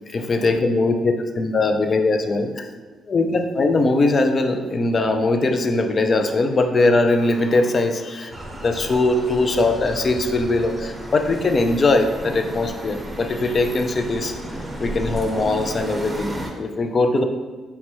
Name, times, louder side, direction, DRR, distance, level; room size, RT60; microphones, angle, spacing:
voice 1, 0.1-2.7 3.1-8.3 8.6-14.3 14.8-17.2, left 2 dB, 40° left, 5 dB, 0.4 m, -20 dB
sound 1, 8.3-16.5, equal, 20° right, 0.6 m, -33 dB
4.6 x 2.2 x 4.4 m, 1.4 s
cardioid pair, 90°, 0 cm